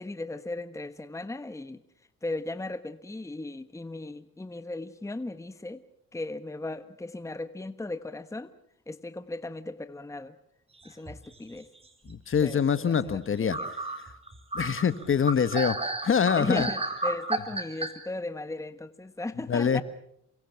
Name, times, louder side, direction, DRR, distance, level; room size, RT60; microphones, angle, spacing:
voice 1, 0.0-1.8 2.2-5.8 6.1-8.5 8.9-10.4 10.8-11.7 12.4-13.7 16.4-19.8, left 2 dB, 10° left, 11 dB, 1.2 m, -36 dB
sound 1, 10.8-11.6 12.1-12.7 13.1-13.2 13.5-17.9, right 2 dB, 20° right, 4.1 m, -32 dB
voice 2, 12.1-13.6 14.5-16.7 19.5-19.8, left 7 dB, 45° left, 13 dB, 1.7 m, -25 dB
29.0 x 23.5 x 6.1 m, 0.71 s
cardioid pair, 90°, 30 cm